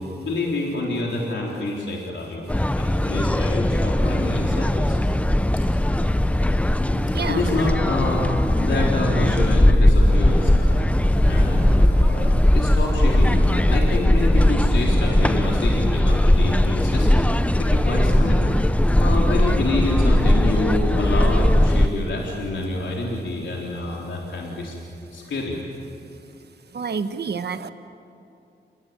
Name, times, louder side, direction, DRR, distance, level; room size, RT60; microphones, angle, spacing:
voice 1, 0.0-5.0 7.3-8.3 8.6-10.8 11.2-17.1 17.6-18.6 19.0-24.7 25.1-25.6, left 2 dB, 80° left, -3 dB, 3.9 m, -27 dB
sound 1, 2.5-21.9, left 1 dB, 5° left, 0.7 m, -19 dB
voice 2, 6.9-7.6 26.7-27.7, right 5 dB, 60° right, 9 dB, 1.4 m, -29 dB
29.0 x 21.0 x 9.0 m, 2.6 s
wide cardioid pair, 90°, 19 cm